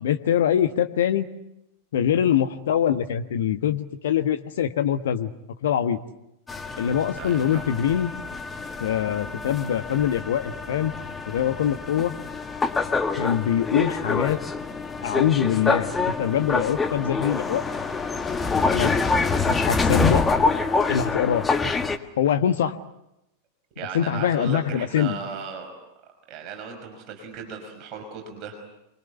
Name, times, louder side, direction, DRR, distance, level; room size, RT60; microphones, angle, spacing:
voice 1, 0.0-1.3 1.9-5.3 5.6-6.0 6.8-8.1 8.8-10.9 11.3-12.1 13.1-14.4 15.0-17.6 18.7-18.9 19.5-20.2 20.9-21.5 22.2-22.8 23.9-25.2, left 9 dB, 60° left, 9 dB, 1.4 m, -23 dB
sound 1, 6.5-22.0, left 4 dB, 15° left, 1.7 m, -26 dB
voice 2, 7.2-7.6 19.4-19.5 23.8-25.8 26.3-28.7, right 5 dB, 35° right, 3 dB, 5.7 m, -37 dB
29.0 x 23.0 x 8.2 m, 0.86 s
figure-of-eight pair, 90°, 0 cm